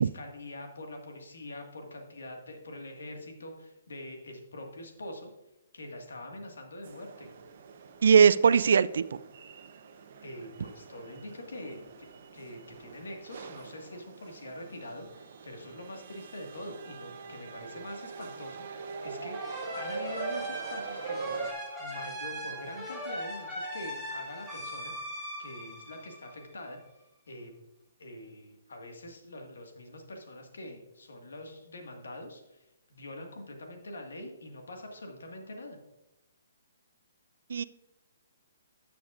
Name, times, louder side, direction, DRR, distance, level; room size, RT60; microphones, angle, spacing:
voice 1, 0.0-5.3 5.7-7.3 10.2-21.4 21.8-26.8 27.3-27.5 28.0-35.8, left 1 dB, 80° left, 3 dB, 1.8 m, -44 dB
sound 1, 6.8-21.5, right 5 dB, 55° right, 0.8 m, -43 dB
voice 2, 8.0-9.0 37.5-37.6, right 6 dB, 70° right, 17 dB, 0.4 m, -20 dB
sound 2, 19.3-26.8, equal, 5° left, 3.0 m, -39 dB
12.0 x 7.0 x 2.5 m, 0.96 s
hypercardioid pair, 145°, 0 cm